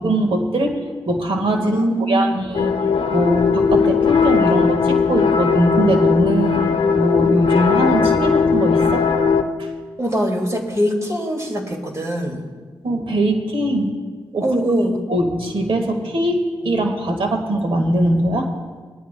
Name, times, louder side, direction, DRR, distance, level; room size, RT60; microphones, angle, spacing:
voice 1, 0.0-1.8 2.1-2.8 3.1-9.1 9.6-9.7 12.8-13.9 14.3-14.5 15.1-18.5, right 1 dB, 75° right, 3 dB, 1.6 m, -21 dB
voice 2, 1.6-2.2 10.0-12.5 14.4-15.0, equal, 35° right, 1 dB, 2.2 m, -22 dB
sound 1, 2.5-9.4, left 6 dB, 90° left, 0.7 m, -18 dB
19.5 x 13.0 x 2.2 m, 1.5 s
cardioid pair, 65°, 9 cm